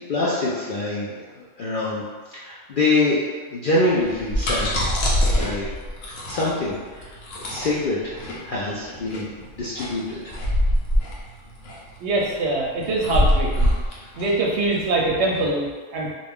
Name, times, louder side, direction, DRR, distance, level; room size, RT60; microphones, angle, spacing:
voice 1, 0.0-2.0 2.3-3.2 3.5-4.7 5.3-5.7 6.1-9.3 9.6-10.2, left 2 dB, 60° left, -8 dB, 0.5 m, -25 dB
sound 1, 4.0-15.4, equal, 85° left, 1.0 m, -24 dB
voice 2, 12.0-13.7 14.2-16.1, right 2 dB, 70° right, -2 dB, 0.8 m, -23 dB
2.5 x 2.3 x 3.4 m, 1.4 s
omnidirectional pair, 1.3 m